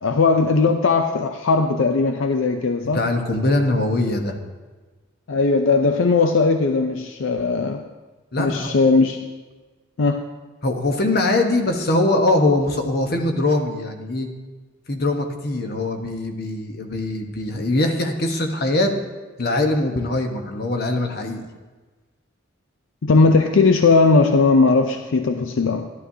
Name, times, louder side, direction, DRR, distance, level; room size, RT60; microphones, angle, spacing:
voice 1, 0.0-3.0 5.3-7.8 8.4-9.3 10.0-10.3 23.0-25.9, left 4 dB, 75° left, 6 dB, 0.5 m, -18 dB
voice 2, 2.9-4.4 8.3-8.7 10.6-14.3 14.9-18.9 19.4-21.4, left 2 dB, 50° left, 4 dB, 1.1 m, -22 dB
12.5 x 11.5 x 2.7 m, 1.3 s
head